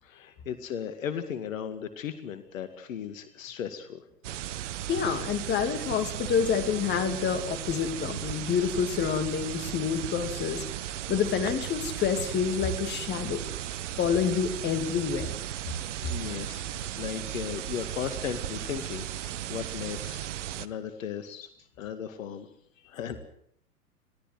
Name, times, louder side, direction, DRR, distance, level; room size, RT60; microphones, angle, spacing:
voice 1, 0.0-4.0 16.0-20.2 20.6-21.5 21.8-22.5 22.9-23.2, left 8 dB, 55° left, 11 dB, 2.1 m, -36 dB
sound 1, 4.2-20.7, right 12 dB, 50° right, 1.1 m, -36 dB
voice 2, 4.9-10.6 11.1-13.4 14.0-15.3, left 7 dB, 20° left, 8 dB, 2.6 m, -28 dB
22.0 x 16.5 x 7.9 m, 0.65 s
figure-of-eight pair, 115°, 47 cm